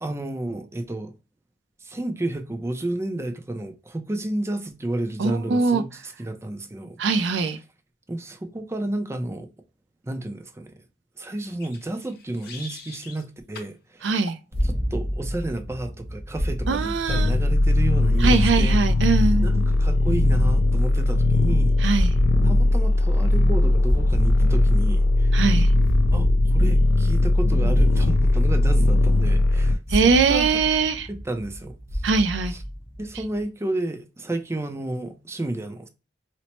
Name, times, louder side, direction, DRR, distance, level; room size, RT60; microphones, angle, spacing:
voice 1, 0.0-1.1 1.8-7.0 8.1-9.5 10.0-10.7 11.2-14.1 14.6-18.8 19.4-21.8 22.4-25.3 26.1-30.6 31.1-32.0 32.5-32.6 33.0-35.9, right 1 dB, 15° right, 0.4 m, -31 dB
voice 2, 5.2-5.8 7.0-7.6 14.0-14.4 16.7-17.3 18.2-19.5 21.8-22.1 25.3-25.7 29.9-31.1 32.0-32.5, right 4 dB, 80° right, 0.4 m, -21 dB
sound 1, 11.4-13.2 13.5-13.8 14.3-14.5, left 3 dB, 60° left, 0.8 m, -43 dB
sound 2, 14.5-33.4, equal, 40° right, 1.1 m, -31 dB
sound 3, 17.1-29.7, left 2 dB, 80° left, 0.3 m, -19 dB
4.3 x 2.0 x 2.9 m
head